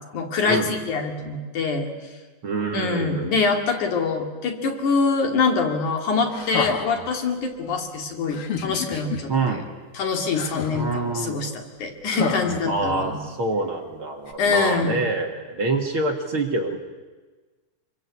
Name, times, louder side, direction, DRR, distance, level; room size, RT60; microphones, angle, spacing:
voice 1, 0.1-1.9 2.7-9.6 9.9-13.2 14.4-15.0, left 4 dB, 65° left, 3 dB, 3.8 m, -24 dB
voice 2, 2.4-3.4 9.3-9.7 10.7-11.4 12.7-16.8, right 3 dB, 45° right, 2 dB, 2.4 m, -26 dB
sound 1, 6.3-7.1 8.3-9.2 10.3-11.0 12.1-13.2 14.3-14.4, left 5 dB, 50° left, 2.3 m, -30 dB
25.0 x 23.5 x 8.4 m, 1.3 s
omnidirectional pair, 3.8 m